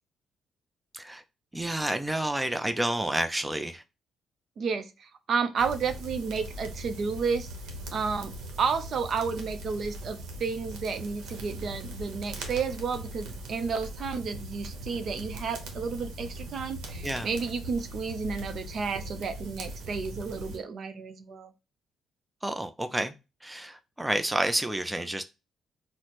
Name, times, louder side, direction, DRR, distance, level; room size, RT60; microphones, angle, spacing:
voice 1, 1.5-3.8 17.0-17.3 22.4-23.1 23.4-25.2, right 1 dB, 10° right, 0.4 m, -29 dB
voice 2, 4.6-7.5 7.9-8.3 8.6-21.5, right 5 dB, 60° right, 0.5 m, -31 dB
sound 1, 5.6-20.6, right 1 dB, 85° right, 0.8 m, -40 dB
4.1 x 2.0 x 3.0 m
cardioid pair, 90°, 0 cm